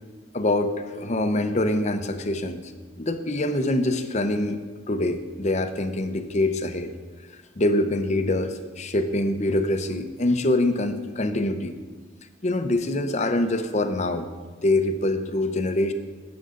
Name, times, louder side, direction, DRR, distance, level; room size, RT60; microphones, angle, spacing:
voice 1, 0.3-2.6 3.0-4.6 4.9-6.9 7.6-11.8 12.4-14.3 14.6-15.9, left 1 dB, 35° left, 8 dB, 0.7 m, -24 dB
16.0 x 8.1 x 3.8 m, 1.4 s
head